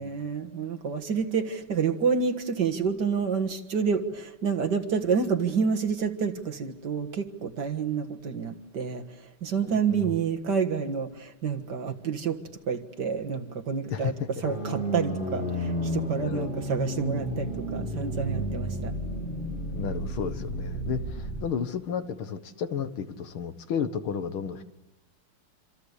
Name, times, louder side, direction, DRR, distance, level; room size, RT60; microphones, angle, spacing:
voice 1, 0.0-9.0 9.4-12.4 12.7-14.1 14.4-18.9, right 6 dB, 55° right, 5 dB, 2.1 m, -28 dB
voice 2, 9.6-10.2 13.9-14.3 16.2-16.5 19.7-24.6, left 7 dB, 70° left, 10 dB, 2.2 m, -32 dB
sound 1, 14.4-21.4, equal, 25° left, 2.4 m, -32 dB
27.0 x 26.5 x 8.2 m, 0.99 s
omnidirectional pair, 2.4 m